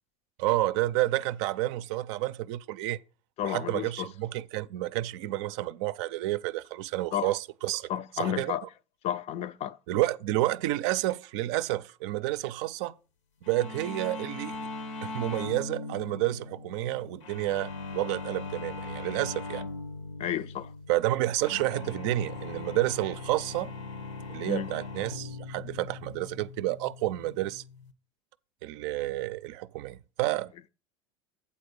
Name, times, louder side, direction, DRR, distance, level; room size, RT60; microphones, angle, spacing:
voice 1, 0.4-3.0 3.4-8.5 9.9-13.0 13.5-14.6 15.0-19.6 20.9-23.7 24.3-27.6 28.6-30.5, right 16 dB, 65° right, 0.5 m, -30 dB
voice 2, 3.4-4.1 7.1-7.3 7.9-8.7 9.0-9.8 20.2-20.7 24.5-24.7, left 10 dB, 40° left, 0.4 m, -32 dB
sound 1, 13.5-27.9, left 3 dB, 80° left, 1.1 m, -40 dB
8.7 x 3.9 x 6.7 m
hypercardioid pair, 95°, 16 cm